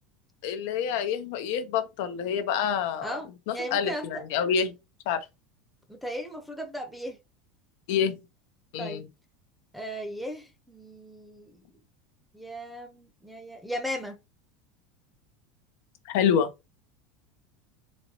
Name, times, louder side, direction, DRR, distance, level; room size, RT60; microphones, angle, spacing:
voice 1, 0.4-3.2 3.5-4.7 5.1-5.3 7.9-8.2 8.7-9.0 16.1-16.5, left 7 dB, 70° left, 0.6 m, -27 dB
voice 2, 3.0-4.2 5.9-7.2 8.8-9.0 9.7-11.7 12.3-14.2, equal, ahead, 0.8 m, -36 dB
4.0 x 2.9 x 2.9 m
supercardioid pair, 135°, 0 cm